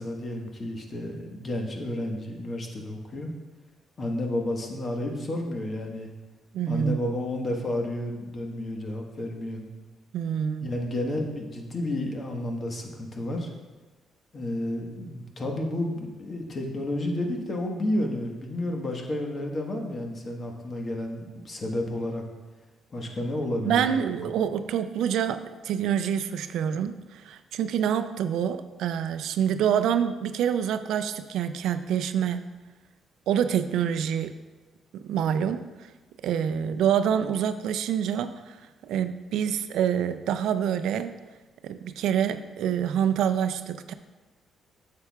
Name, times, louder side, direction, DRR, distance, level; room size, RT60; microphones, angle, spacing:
voice 1, 0.0-3.3 4.0-6.1 6.7-9.7 10.6-13.5 14.3-22.2 22.9-24.2, left 1 dB, 40° left, 2 dB, 1.3 m, -31 dB
voice 2, 6.5-7.0 10.1-10.7 23.7-32.5 33.3-34.4 35.0-35.7 36.2-38.6 38.8-41.1 41.6-43.9, right 8 dB, 80° right, 10 dB, 0.4 m, -26 dB
9.7 x 6.7 x 2.3 m, 1.2 s
cardioid pair, 90°, 0 cm